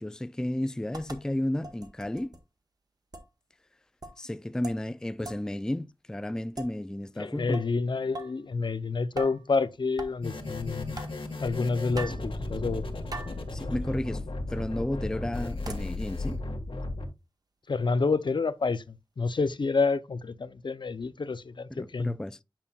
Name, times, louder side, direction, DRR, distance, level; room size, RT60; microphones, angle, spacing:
voice 1, 0.0-2.4 4.2-7.6 13.5-14.2 14.5-16.4 21.7-22.4, left 1 dB, 5° left, 0.3 m, -32 dB
sound 1, 0.9-1.2 1.6-2.4 3.1-3.3 4.0-4.2 4.6-4.9 5.2-5.5 6.6-6.8 7.5-7.7 8.1-8.4 9.2-9.5 10.0-10.2 11.0-11.2 11.9-12.3 13.1-13.4 14.0-14.1 15.6-15.9, right 2 dB, 45° right, 1.2 m, -40 dB
voice 2, 7.2-11.0 11.4-12.8 17.7-18.8 19.2-22.2, left 4 dB, 65° left, 0.5 m, -28 dB
sound 2, 10.2-17.0, left 2 dB, 85° left, 1.6 m, -35 dB
9.0 x 5.5 x 2.3 m
wide cardioid pair, 80°, 9 cm